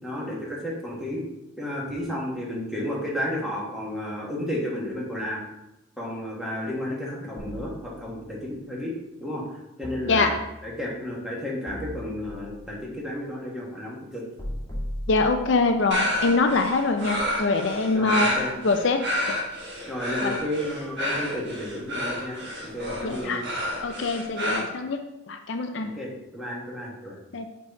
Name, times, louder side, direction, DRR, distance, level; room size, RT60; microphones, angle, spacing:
voice 1, 0.0-1.3 1.6-5.4 6.0-8.9 9.2-10.4 10.6-14.2 17.9-18.5 19.9-23.4 25.9-27.2, left 1 dB, ahead, -5 dB, 1.5 m, -32 dB
sound 1, 7.4-8.4 9.8-10.8 11.7-12.7 14.4-15.8, equal, 20° left, 2.0 m, -37 dB
voice 2, 10.0-10.4 15.1-18.3 18.6-19.0 19.3-19.4 20.2-20.4 23.0-23.4 23.8-25.0 25.3-25.9 27.3-27.5, left 3 dB, 60° left, 5 dB, 0.5 m, -24 dB
sound 2, 15.9-24.6, left 1 dB, 55° right, 1.3 m, -30 dB
6.3 x 4.0 x 4.7 m, 0.93 s
head